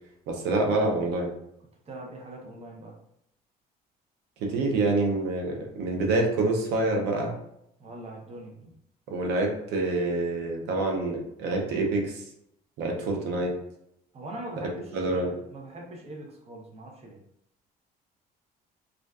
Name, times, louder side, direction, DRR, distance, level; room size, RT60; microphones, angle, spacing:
voice 1, 0.3-1.3 4.4-7.3 9.1-12.2 12.8-13.5 14.9-15.3, right 2 dB, 85° right, 1 dB, 0.6 m, -26 dB
voice 2, 1.9-3.0 7.8-8.7 14.1-17.2, right 1 dB, 40° right, 0 dB, 0.6 m, -42 dB
2.4 x 2.2 x 2.3 m, 0.77 s
cardioid pair, 110°, 17 cm